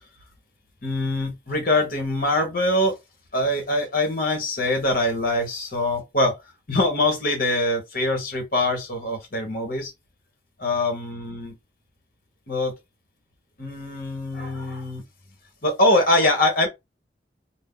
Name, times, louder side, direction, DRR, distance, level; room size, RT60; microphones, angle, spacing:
voice 1, 0.8-3.0 3.3-6.4 6.7-9.9 10.6-11.6 12.5-12.7 13.6-15.0 15.6-16.7, left 1 dB, 50° left, 1.1 m, -23 dB
2.7 x 2.1 x 3.6 m
head